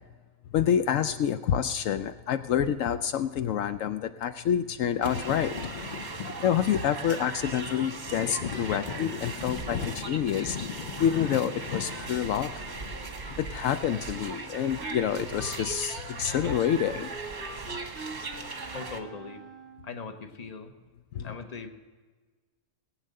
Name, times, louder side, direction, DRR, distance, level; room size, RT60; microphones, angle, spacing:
voice 1, 0.5-5.6 6.4-10.6 11.0-12.5 13.4-17.1 21.1-21.3, left 9 dB, 75° left, 11 dB, 0.9 m, -27 dB
sound 1, 5.0-19.0, right 4 dB, 35° right, 1.2 m, -39 dB
sound 2, 5.1-13.4, left 7 dB, 50° left, 0.6 m, -39 dB
Wind instrument woodwind instrument, 13.9-20.0, right 2 dB, 10° right, 2.4 m, -44 dB
voice 2, 18.7-19.4 19.8-20.7 21.2-21.7, left 4 dB, 35° left, 6 dB, 1.1 m, -40 dB
19.5 x 8.3 x 6.6 m, 1.4 s
omnidirectional pair, 1.4 m